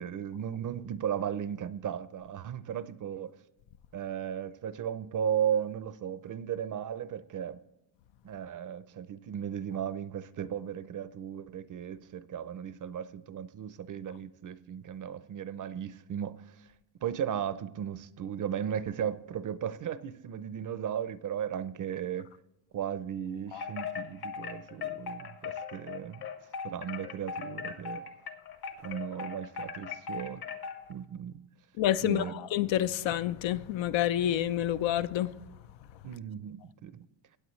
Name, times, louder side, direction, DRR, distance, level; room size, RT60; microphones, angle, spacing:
voice 1, 0.0-3.4 3.9-7.6 8.2-16.7 17.0-22.3 22.7-26.3 26.6-28.0 28.8-30.4 30.9-31.4 32.0-32.3 36.0-37.0, right 9 dB, 40° right, 0.6 m, -36 dB
Wind chime, 23.5-30.9, left 6 dB, 50° left, 1.4 m, -39 dB
voice 2, 31.8-35.3, left 12 dB, 65° left, 0.6 m, -28 dB
16.5 x 9.0 x 3.1 m
cardioid pair, 115°, 49 cm